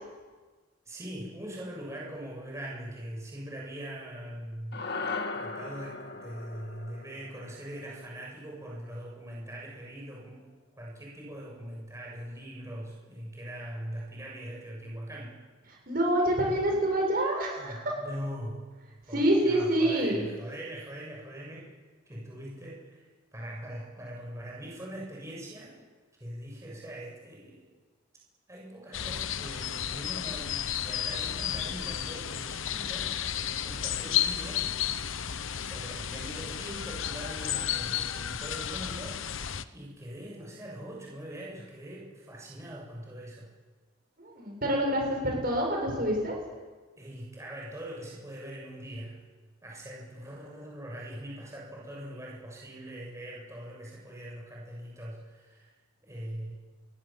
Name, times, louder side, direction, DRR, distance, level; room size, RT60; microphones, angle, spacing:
voice 1, 0.9-4.8 5.3-10.4 10.8-15.4 17.6-18.7 19.1-21.6 22.1-25.8 26.2-27.7 28.5-34.7 35.6-43.5 47.0-49.2 49.6-55.7 56.0-56.5, right 1 dB, 15° right, -3 dB, 7.4 m, -42 dB
sound 1, 4.7-9.2, left 3 dB, 55° left, 1.8 m, -39 dB
voice 2, 15.9-17.8 19.1-20.2 44.2-46.4, right 1 dB, 45° right, 0 dB, 7.8 m, -26 dB
sound 2, 28.9-39.6, left 9 dB, 70° left, 0.9 m, -32 dB
29.0 x 22.5 x 7.4 m, 1.4 s
head